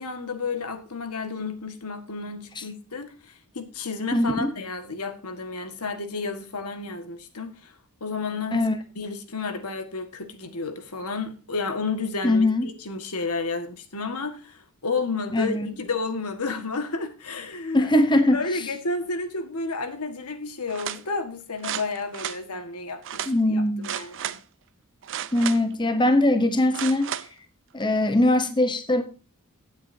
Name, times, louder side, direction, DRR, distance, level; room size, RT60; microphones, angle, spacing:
voice 1, 0.0-7.7 8.0-8.7 8.9-17.9 18.3-24.4, left 4 dB, 80° left, 1.7 m, -31 dB
voice 2, 4.1-4.5 8.5-8.8 12.2-12.7 15.3-15.7 17.7-18.4 23.3-23.9 25.3-27.1 27.7-29.0, left 1 dB, 20° left, 0.9 m, -21 dB
sound 1, 20.7-21.0 21.6-22.4 23.0-23.3 23.8-24.4 25.0-25.8 26.7-27.3 27.8-27.9, right 10 dB, 60° right, 0.7 m, -33 dB
16.0 x 8.0 x 2.7 m
head